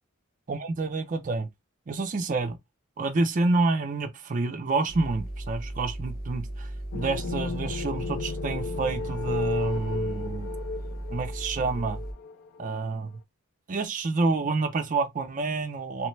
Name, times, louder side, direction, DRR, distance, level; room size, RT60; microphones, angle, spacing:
voice 1, 0.5-1.5 1.9-2.6 3.0-6.7 6.9-10.5 11.1-12.0 12.6-13.1 13.7-16.1, right 3 dB, 40° right, 0.5 m, -28 dB
sound 1, 4.9-12.1, right 1 dB, 45° left, 0.8 m, -36 dB
sound 2, 6.9-12.8, left 4 dB, 60° left, 0.4 m, -34 dB
3.1 x 2.1 x 3.1 m
head